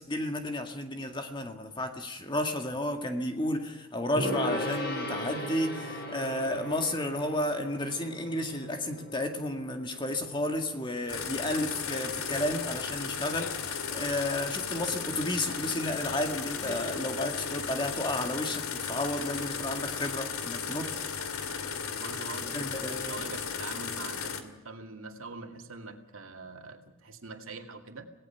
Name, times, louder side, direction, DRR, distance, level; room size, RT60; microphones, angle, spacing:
voice 1, 0.0-20.9 22.5-23.3, left 1 dB, 20° left, 5 dB, 2.1 m, -32 dB
Gong, 4.2-11.6, equal, 50° left, 4.9 m, -38 dB
sound 1, 11.1-24.4, left 6 dB, 85° left, 2.4 m, -35 dB
voice 2, 21.8-28.1, right 3 dB, 75° right, 4 dB, 2.4 m, -44 dB
26.5 x 18.0 x 5.9 m, 1.0 s
head